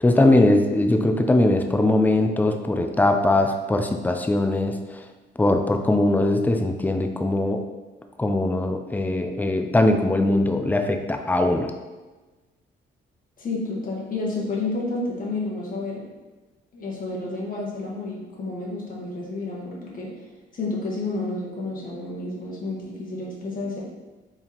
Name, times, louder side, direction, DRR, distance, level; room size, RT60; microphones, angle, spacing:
voice 1, 0.0-4.8 5.4-7.6 8.2-11.7, left 2 dB, 10° left, 6 dB, 0.4 m, -21 dB
voice 2, 13.4-16.0 16.7-20.2 20.5-23.8, left 2 dB, 45° left, -4 dB, 1.4 m, -30 dB
4.3 x 3.6 x 2.9 m, 1.2 s
cardioid pair, 90°, 20 cm